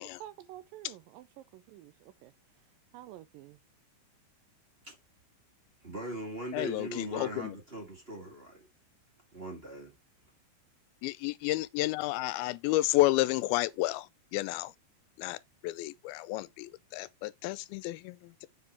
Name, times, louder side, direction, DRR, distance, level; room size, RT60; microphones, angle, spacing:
voice 1, 0.0-2.3 2.9-3.6, right 14 dB, 80° right, 2.1 m, -49 dB
voice 2, 5.8-8.7 9.3-9.9, right 1 dB, 30° right, 1.1 m, -40 dB
voice 3, 6.5-7.6 11.0-14.7 15.2-18.5, left 17 dB, 85° left, 2.4 m, -31 dB
7.4 x 3.7 x 4.4 m
omnidirectional pair, 4.3 m